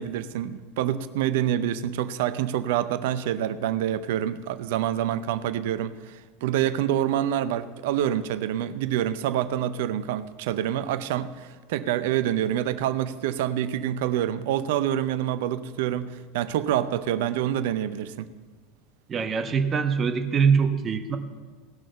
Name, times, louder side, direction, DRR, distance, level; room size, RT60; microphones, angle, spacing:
voice 1, 0.0-18.3, right 11 dB, 65° right, 14 dB, 0.6 m, -27 dB
voice 2, 19.1-21.2, right 6 dB, 30° right, 7 dB, 1.2 m, -23 dB
17.5 x 6.2 x 6.8 m, 1.4 s
hypercardioid pair, 85°, 0 cm